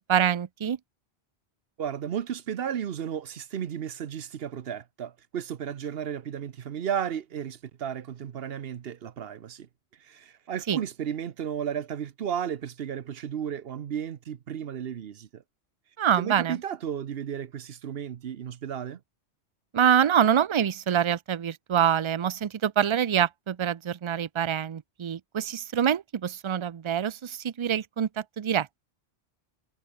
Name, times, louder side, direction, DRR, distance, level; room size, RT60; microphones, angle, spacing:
voice 1, 0.1-0.8 10.7-10.8 16.0-16.6 19.7-28.8, right 9 dB, 50° right, 0.3 m, -25 dB
voice 2, 1.8-9.7 10.0-15.4 16.2-19.0, right 8 dB, 65° right, 1.0 m, -34 dB
omnidirectional pair, 1.1 m